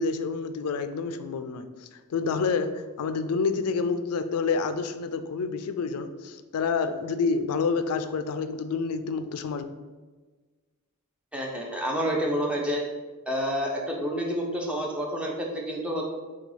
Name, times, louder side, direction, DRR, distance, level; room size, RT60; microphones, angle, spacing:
voice 1, 0.0-9.6, left 4 dB, 75° left, 10 dB, 0.4 m, -28 dB
voice 2, 11.3-12.9 13.3-16.1, equal, 5° right, -1 dB, 0.6 m, -29 dB
6.6 x 2.3 x 3.1 m, 1.3 s
head